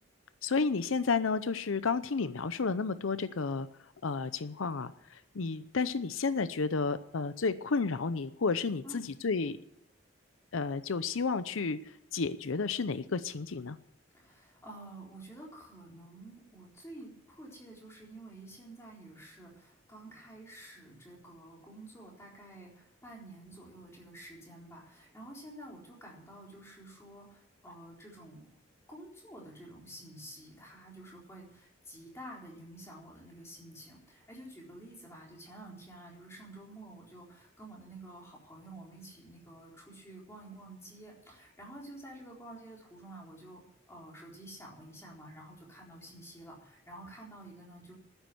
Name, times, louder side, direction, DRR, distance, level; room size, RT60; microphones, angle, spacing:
voice 1, 0.4-3.7 4.0-9.6 10.5-11.8 12.1-13.8, left 4 dB, 85° left, 14 dB, 0.7 m, -31 dB
voice 2, 14.1-28.6 28.9-48.0, right 1 dB, 15° left, -2 dB, 4.0 m, -50 dB
12.5 x 9.9 x 7.8 m, 0.79 s
head